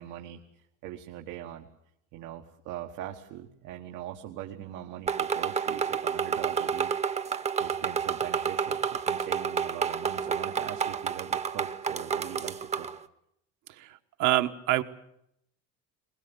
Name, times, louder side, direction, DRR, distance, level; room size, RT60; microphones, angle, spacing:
voice 1, 0.0-1.7 2.1-6.9 7.2-12.9, right 11 dB, 90° right, 3 dB, 1.6 m, -41 dB
sound 1, 5.1-13.0, right 6 dB, 20° right, 0.8 m, -30 dB
voice 2, 13.8-14.8, right 15 dB, 75° right, 8 dB, 1.3 m, -26 dB
22.5 x 21.0 x 8.1 m, 0.77 s
cardioid pair, 145°, 31 cm